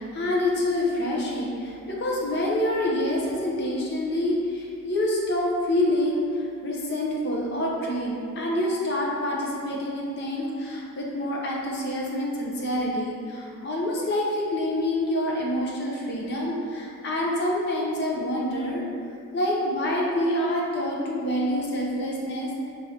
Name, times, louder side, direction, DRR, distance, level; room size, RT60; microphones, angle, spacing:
voice 1, 0.0-18.8 19.3-22.7, left 1 dB, 50° left, -3 dB, 0.7 m, -27 dB
5.1 x 3.0 x 2.8 m, 2.4 s
head